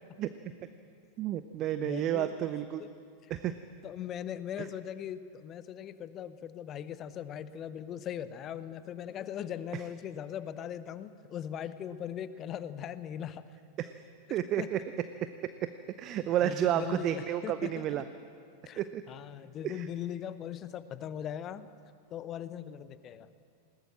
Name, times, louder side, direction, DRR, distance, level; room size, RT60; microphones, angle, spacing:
voice 1, 1.2-2.8 3.3-3.5 13.8-13.9 14.3-14.8 15.4-15.7 16.0-18.0 18.8-19.0 19.6-19.8, right 11 dB, 35° right, 12 dB, 0.7 m, -31 dB
voice 2, 1.8-2.3 2.8-2.9 3.2-3.3 3.8-13.4 14.3-14.7 16.4-18.0 18.6-18.8 19.1-21.7 22.1-23.3, left 9 dB, 30° left, 15 dB, 0.8 m, -40 dB
20.5 x 19.5 x 7.6 m, 2.3 s
figure-of-eight pair, 90°, 0 cm